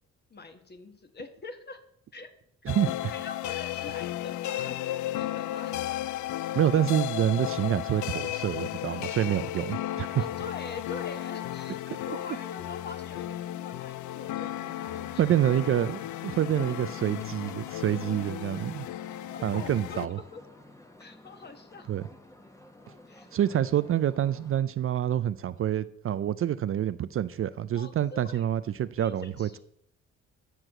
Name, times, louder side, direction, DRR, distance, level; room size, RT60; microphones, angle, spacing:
voice 1, 0.3-1.8 2.1-2.3 3.1-4.8 5.1-5.8 9.8-15.2 19.1-20.4 21.0-21.9 23.1-23.3 27.7-28.5 29.0-29.6, left 4 dB, 35° left, 1.5 m, -44 dB
sound 1, 2.7-20.1, left 14 dB, 75° left, 0.5 m, -34 dB
voice 2, 2.7-3.1 6.5-10.2 11.9-12.0 15.2-18.9 19.4-20.2 21.9-22.0 23.3-29.6, right 11 dB, 45° right, 0.4 m, -27 dB
sound 2, 14.4-24.6, left 1 dB, 10° left, 1.2 m, -51 dB
9.8 x 4.6 x 7.6 m
cardioid pair, 90°, 30 cm